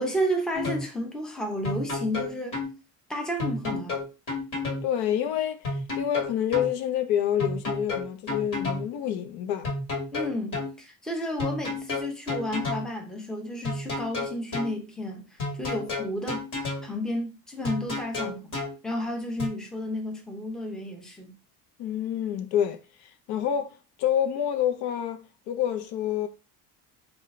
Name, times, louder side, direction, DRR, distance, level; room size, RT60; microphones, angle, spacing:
voice 1, 0.0-2.6 3.1-4.0 10.1-15.3 15.6-16.4 16.8-18.5 18.8-21.4, equal, ahead, 0.5 m, -32 dB
sound 1, 0.5-0.9 1.6-2.7 3.4-4.8 5.6-6.7 7.4-8.9 9.6-10.7 11.4-12.9 13.6-14.7 15.4-16.9 17.6-18.7 19.4-19.5, left 2 dB, 55° left, 1.7 m, -31 dB
voice 2, 4.8-5.6 6.0-9.7 21.8-22.8 23.3-23.7 24.0-26.3, left 10 dB, 85° left, 0.7 m, -27 dB
3.9 x 2.3 x 3.1 m
cardioid pair, 155°, 37 cm